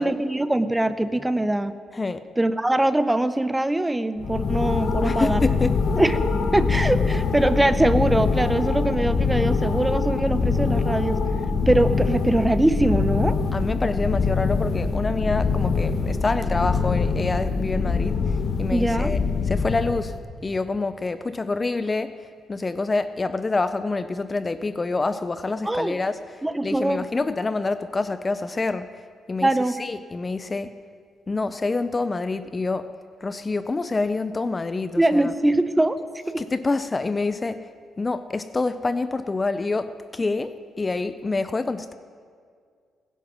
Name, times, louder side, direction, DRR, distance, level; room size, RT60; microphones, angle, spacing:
voice 1, 0.0-1.7 2.4-5.4 6.0-11.2 11.7-13.4 18.7-19.1 25.6-26.0 26.4-27.1 29.4-29.8 35.0-36.0 36.3-36.4, right 1 dB, 10° right, 13 dB, 0.7 m, -22 dB
voice 2, 1.9-2.2 5.0-5.8 13.5-29.0 29.3-29.5 29.8-30.8 31.3-32.9 33.2-35.3 36.4-37.7 38.0-41.9, left 3 dB, 25° left, 13 dB, 0.5 m, -27 dB
sound 1, 4.2-20.2, left 4 dB, 55° left, 1.1 m, -24 dB
18.0 x 11.0 x 6.2 m, 2.1 s
cardioid pair, 90°, 0 cm